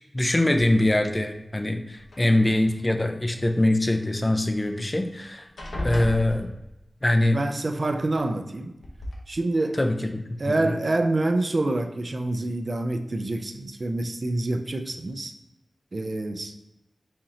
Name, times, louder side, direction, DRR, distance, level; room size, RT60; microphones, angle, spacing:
voice 1, 0.1-5.5 5.8-6.5 7.0-7.4 9.8-10.6, left 1 dB, 25° left, 5 dB, 0.4 m, -23 dB
sound 1, 2.0-2.8 4.6-4.7 5.0-5.2 5.6-7.0 8.2-8.3 8.8-9.2, left 1 dB, 80° left, 1.0 m, -35 dB
voice 2, 7.3-8.8 9.3-9.8 10.4-15.3 15.9-16.6, right 2 dB, 45° right, 7 dB, 0.4 m, -27 dB
4.2 x 2.8 x 3.7 m, 0.93 s
wide cardioid pair, 90°, 0 cm